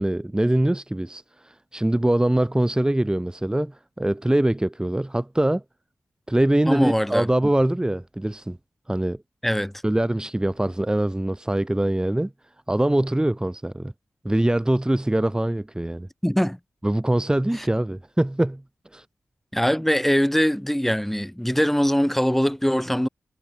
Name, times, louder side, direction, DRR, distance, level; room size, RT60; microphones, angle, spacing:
voice 1, 0.0-5.6 6.3-8.6 8.9-9.2 9.8-12.3 12.7-13.9 14.2-16.1 16.8-18.6 18.9-19.0, right 1 dB, 15° right, 1.4 m, -23 dB
voice 2, 6.7-7.3 9.4-9.7 16.2-16.6 17.5-17.7 19.5-23.1, equal, 5° left, 3.2 m, -22 dB
cardioid pair, 60°, 6 cm